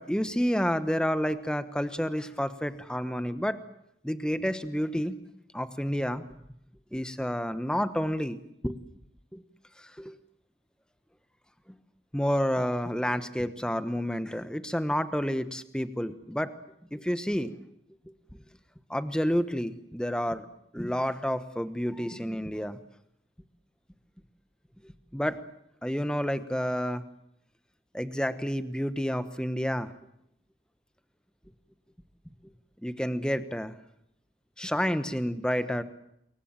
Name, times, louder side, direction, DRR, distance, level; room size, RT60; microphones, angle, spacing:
voice 1, 0.0-3.6 4.0-5.1 5.5-6.2 6.9-8.4 8.6-8.8 9.3-9.4 10.0-10.1 12.1-16.5 16.9-17.5 18.9-20.4 20.7-22.8 25.1-25.4 25.8-27.0 27.9-29.9 32.8-33.7 34.6-35.8, equal, 5° left, 11 dB, 1.1 m, -29 dB
28.0 x 23.0 x 7.5 m, 0.77 s
head